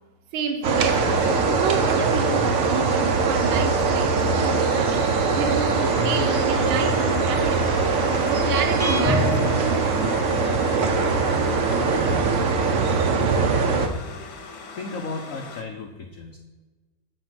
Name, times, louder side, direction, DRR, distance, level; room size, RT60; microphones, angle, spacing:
voice 1, 0.3-5.1 5.3-8.0 8.3-10.2, right 6 dB, 85° right, 1.6 m, -29 dB
sound 1, 0.6-13.9, right 4 dB, 65° right, 0.8 m, -22 dB
sound 2, 0.8-15.6, left 4 dB, 55° left, 1.2 m, -40 dB
sound 3, 8.8-10.8, right 1 dB, 15° right, 0.6 m, -26 dB
voice 2, 14.7-16.4, left 3 dB, 80° left, 0.7 m, -34 dB
8.0 x 4.8 x 5.8 m
omnidirectional pair, 2.2 m